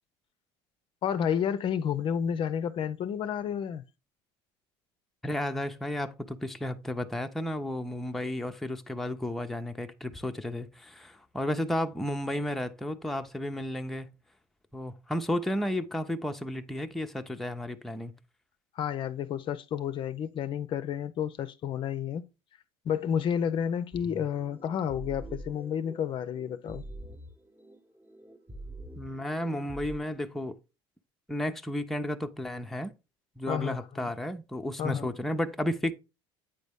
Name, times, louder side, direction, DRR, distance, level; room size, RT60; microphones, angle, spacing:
voice 1, 1.0-3.8 18.8-22.3 22.8-26.8 33.5-34.1 34.8-35.1, left 8 dB, 45° left, 0.5 m, -31 dB
voice 2, 5.2-14.1 14.7-18.1 29.0-30.6 31.3-32.9 33.4-35.9, left 1 dB, ahead, 0.6 m, -33 dB
sound 1, 23.9-30.0, right 1 dB, 15° right, 0.9 m, -45 dB
8.8 x 4.1 x 3.5 m
supercardioid pair, 110°, 12 cm